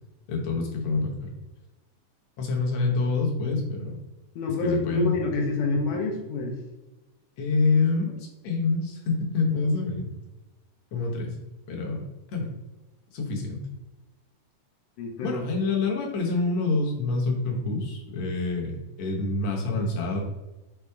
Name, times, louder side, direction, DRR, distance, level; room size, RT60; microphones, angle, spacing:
voice 1, 0.3-1.3 2.4-4.0 4.6-5.2 7.4-10.1 10.9-11.4 11.7-12.5 13.1-13.6 15.2-20.2, left 3 dB, 65° left, -1 dB, 2.0 m, -27 dB
voice 2, 4.4-6.6 7.7-7.8 15.0-15.4, left 2 dB, 85° left, 0 dB, 2.1 m, -27 dB
5.6 x 2.0 x 4.4 m, 1.1 s
omnidirectional pair, 3.5 m